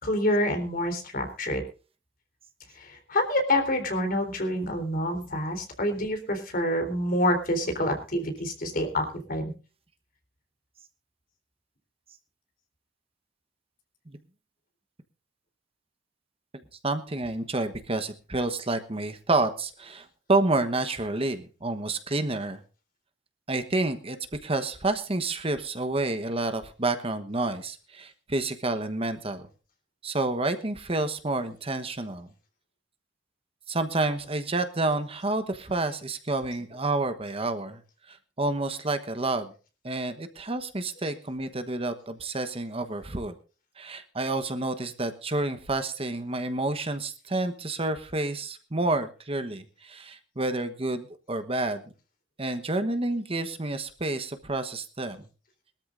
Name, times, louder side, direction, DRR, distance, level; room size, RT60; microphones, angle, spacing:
voice 1, 0.0-1.6 2.7-9.5, left 1 dB, 50° left, 6 dB, 3.7 m, -27 dB
voice 2, 16.8-22.6 23.5-29.5 30.0-32.3 33.7-37.8 38.1-39.5 39.8-43.3 43.8-51.8 52.4-55.3, right 2 dB, 30° right, 9 dB, 1.2 m, -29 dB
22.5 x 13.0 x 2.6 m, 0.35 s
head